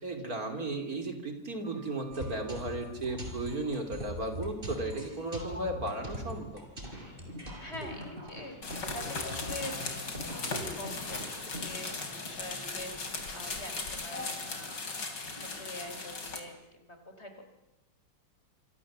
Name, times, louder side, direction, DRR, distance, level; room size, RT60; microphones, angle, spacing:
voice 1, 0.0-6.6, right 2 dB, 55° right, 6 dB, 3.5 m, -35 dB
Sliding door, 1.4-3.0 4.8-5.1 5.3-7.8 8.4-15.9, left 1 dB, 5° left, 3.5 m, -52 dB
sound 1, 2.1-11.8, equal, 30° right, 5.4 m, -42 dB
voice 2, 7.6-17.5, left 1 dB, 35° left, 6 dB, 4.2 m, -45 dB
sound 2, 8.6-16.4, left 3 dB, 85° left, 3.9 m, -38 dB
27.0 x 26.0 x 7.4 m, 0.95 s
omnidirectional pair, 1.9 m